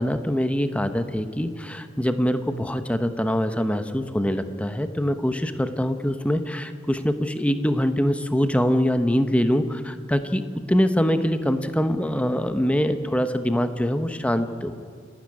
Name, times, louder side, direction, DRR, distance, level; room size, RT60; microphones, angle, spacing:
voice 1, 0.0-10.4 10.7-14.7, equal, 5° left, 9 dB, 0.9 m, -24 dB
29.5 x 12.5 x 9.8 m, 2.1 s
head